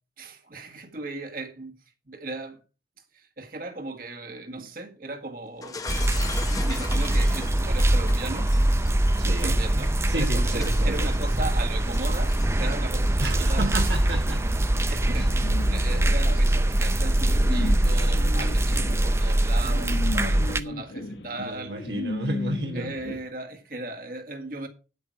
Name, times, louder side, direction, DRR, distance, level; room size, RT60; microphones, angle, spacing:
voice 1, 0.2-2.6 3.1-5.8 6.5-8.5 9.3-13.7 14.9-21.9 22.7-24.7, right 2 dB, 55° right, 1.8 m, -37 dB
Shatter, 5.6-13.0, left 3 dB, 20° left, 0.9 m, -40 dB
sound 1, 5.9-20.6, right 1 dB, 15° right, 0.5 m, -23 dB
voice 2, 9.2-9.6 10.1-11.1 13.2-14.4 15.1-15.3 21.4-22.9, right 1 dB, 70° right, 1.5 m, -32 dB
sound 2, 14.1-23.2, left 2 dB, 80° left, 1.4 m, -36 dB
9.3 x 8.5 x 4.7 m
head